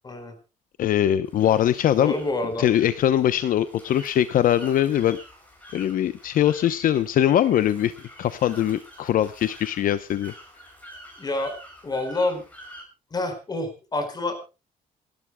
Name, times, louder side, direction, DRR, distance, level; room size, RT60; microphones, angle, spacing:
voice 1, 0.8-2.1 2.6-5.2 5.7-7.9 8.2-10.3, left 11 dB, 65° left, 13 dB, 0.8 m, -21 dB
sound 1, 1.3-12.8, equal, 10° left, 6.4 m, -47 dB
voice 2, 2.0-2.7 11.2-11.5 11.8-12.4 13.1-14.4, left 2 dB, 25° left, 8 dB, 4.9 m, -27 dB
28.5 x 12.5 x 2.2 m, 0.30 s
cardioid pair, 145°, 15 cm